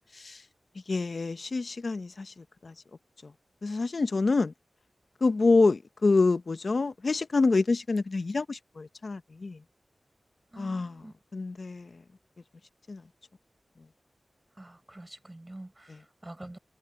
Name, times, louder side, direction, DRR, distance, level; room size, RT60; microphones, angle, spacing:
voice 1, 0.1-0.4 0.9-2.7 3.2-3.3 3.6-4.5 5.2-9.6 10.6-11.0 11.3-12.0 12.9-13.0, left 3 dB, 65° left, 0.8 m, -27 dB
voice 2, 10.5-11.1 14.6-16.6, right 1 dB, 25° right, 7.1 m, -46 dB
cardioid pair, 50°, 0 cm